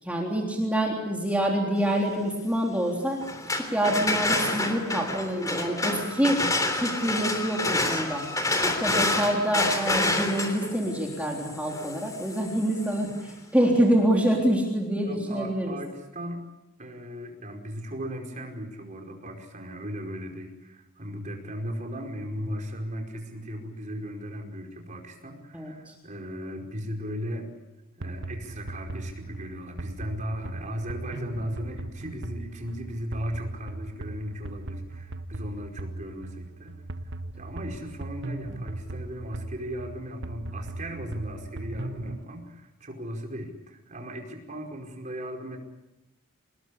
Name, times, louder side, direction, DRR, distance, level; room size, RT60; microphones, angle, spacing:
voice 1, 0.0-3.2 3.5-6.4 6.7-8.3 8.6-15.8 25.5-25.9, right 1 dB, 5° right, -1 dB, 3.6 m, -26 dB
sound 1, 3.2-13.0, left 2 dB, 15° left, 3.3 m, -28 dB
voice 2, 15.0-16.4 16.8-27.5 27.9-36.8 37.1-45.6, equal, 35° right, 2 dB, 5.1 m, -37 dB
sound 2, 28.0-42.2, right 2 dB, 55° right, 1.1 m, -38 dB
26.5 x 20.0 x 8.4 m, 0.96 s
head